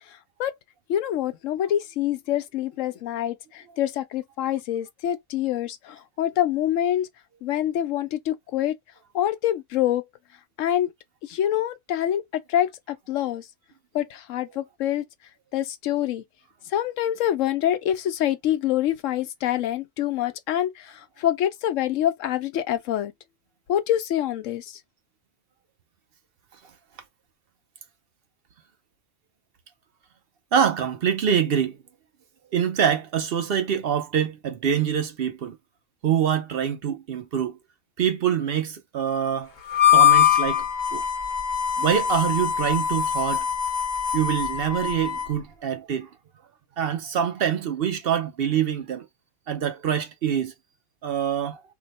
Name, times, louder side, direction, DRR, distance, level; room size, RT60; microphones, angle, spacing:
voice 1, 0.1-0.5 0.9-7.1 7.4-8.7 9.1-10.0 10.6-10.9 11.2-13.5 13.9-15.0 15.5-16.2 16.7-23.1 23.7-24.8, left 11 dB, 90° left, 1.0 m, -26 dB
voice 2, 30.5-31.8 32.5-35.6 36.0-37.6 38.0-39.5 39.9-40.6 40.9-41.0 41.8-43.4 44.1-46.1 46.8-49.1 49.5-50.5 51.0-51.6, right 8 dB, 60° right, 0.7 m, -25 dB
Harmonica, 39.7-45.4, left 10 dB, 45° left, 0.8 m, -22 dB
2.8 x 2.1 x 4.0 m
omnidirectional pair, 1.3 m